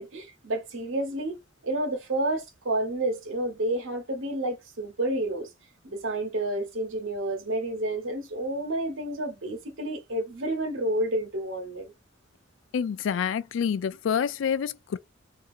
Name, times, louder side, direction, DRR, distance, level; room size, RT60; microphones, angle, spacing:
voice 1, 0.0-1.4 1.6-5.5 5.8-11.9, right 1 dB, 80° right, 1.1 m, -30 dB
voice 2, 12.7-15.0, left 7 dB, 70° left, 0.3 m, -27 dB
2.7 x 2.6 x 2.5 m
head